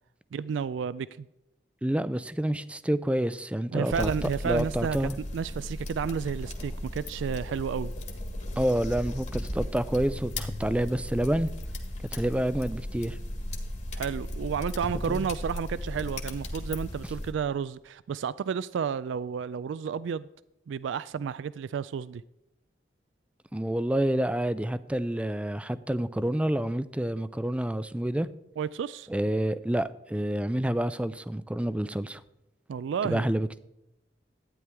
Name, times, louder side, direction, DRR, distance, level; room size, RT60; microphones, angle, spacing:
voice 1, 0.3-1.3 3.7-5.0 5.3-7.9 13.9-20.3 20.7-22.2 28.6-29.1 32.7-33.3, right 6 dB, 80° right, 0.3 m, -31 dB
voice 2, 1.8-4.1 4.4-5.2 8.6-11.5 12.1-13.2 15.1-15.2 23.5-28.3 29.1-32.2 33.0-33.6, right 1 dB, 5° right, 0.4 m, -28 dB
sound 1, 3.9-17.3, left 1 dB, 40° left, 1.6 m, -36 dB
12.5 x 9.6 x 3.5 m
head